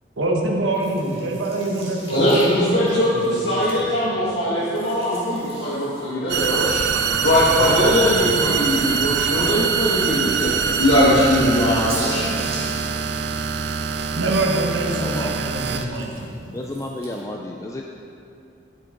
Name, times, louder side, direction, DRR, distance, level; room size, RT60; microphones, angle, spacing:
voice 1, 0.2-3.8 12.1-12.5 14.1-16.6, right 2 dB, 85° right, 0 dB, 1.2 m, -26 dB
sound 1, 0.7-4.1 4.6-9.8 10.2-10.3 11.2-14.2 14.6-17.2, right 2 dB, 30° right, 1.9 m, -41 dB
voice 2, 2.1-6.8 7.2-12.3, left 1 dB, 70° left, -9 dB, 1.7 m, -20 dB
sound 2, 6.3-15.8, right 6 dB, 60° right, 0.5 m, -24 dB
voice 3, 15.0-15.4 16.5-17.8, left 1 dB, 15° left, 1 dB, 0.4 m, -31 dB
10.5 x 8.3 x 3.8 m, 2.5 s
head